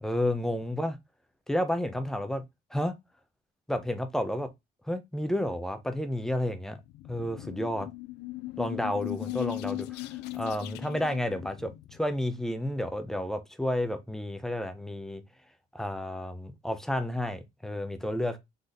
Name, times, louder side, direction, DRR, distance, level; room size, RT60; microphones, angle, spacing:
voice 1, 0.0-1.0 1.5-2.4 2.7-2.9 3.7-4.5 4.9-6.8 7.1-7.9 8.6-10.0 10.3-15.2 15.7-18.4, left 1 dB, 5° left, 0.8 m, -31 dB
sound 1, 6.8-12.2, left 19 dB, 85° left, 0.4 m, -38 dB
4.0 x 3.2 x 3.9 m
cardioid pair, 110°, 17 cm